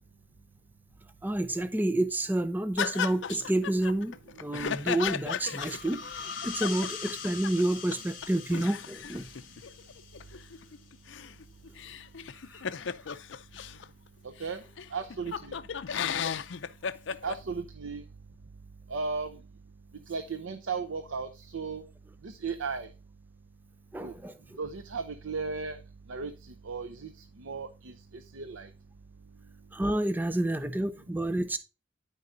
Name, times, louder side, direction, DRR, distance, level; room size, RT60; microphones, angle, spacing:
voice 1, 1.2-4.1 4.4-9.3 12.5-12.6 23.9-24.3 29.7-31.6, right 1 dB, 10° right, 0.4 m, -29 dB
sound 1, 2.8-7.6 7.9-8.0 8.2-13.9 14.4-14.5 14.8-17.4, left 7 dB, 70° left, 0.5 m, -35 dB
sound 2, 5.6-10.9, left 6 dB, 45° left, 2.2 m, -42 dB
voice 2, 14.2-14.6 14.9-15.6 17.2-18.0 18.9-19.4 20.1-21.8 22.2-22.9 24.0-24.1 24.6-25.8 26.1-28.7, right 4 dB, 85° right, 0.7 m, -36 dB
12.5 x 4.8 x 2.6 m
head